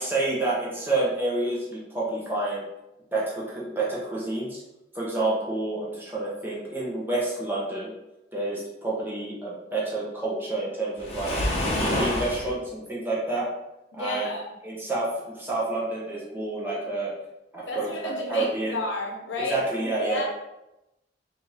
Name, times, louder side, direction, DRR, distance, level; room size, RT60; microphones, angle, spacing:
voice 1, 0.0-2.6 3.1-4.6 4.9-7.9 8.3-11.3 11.7-13.5 13.9-14.3 14.6-17.1 17.5-18.8 19.5-20.2, right 2 dB, 10° right, -6 dB, 0.9 m, -29 dB
Waves surf, 11.0-12.5, left 1 dB, 35° left, 0.9 m, -26 dB
voice 2, 13.9-14.5 17.7-20.2, left 2 dB, 85° left, 0 dB, 0.9 m, -32 dB
4.3 x 2.7 x 3.3 m, 0.92 s
head